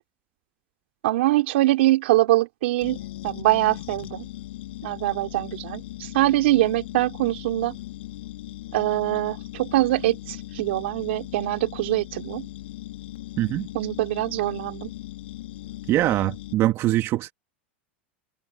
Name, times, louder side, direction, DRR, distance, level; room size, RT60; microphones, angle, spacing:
voice 1, 1.0-3.0 3.2-4.2 4.8-7.7 8.7-12.5 13.7-14.9, right 17 dB, 75° right, 3.1 m, -23 dB
sound 1, 2.8-16.5, left 15 dB, 75° left, 4.4 m, -38 dB
voice 2, 13.4-13.7 15.9-17.3, right 15 dB, 45° right, 1.9 m, -23 dB
hypercardioid pair, 110°, 6 cm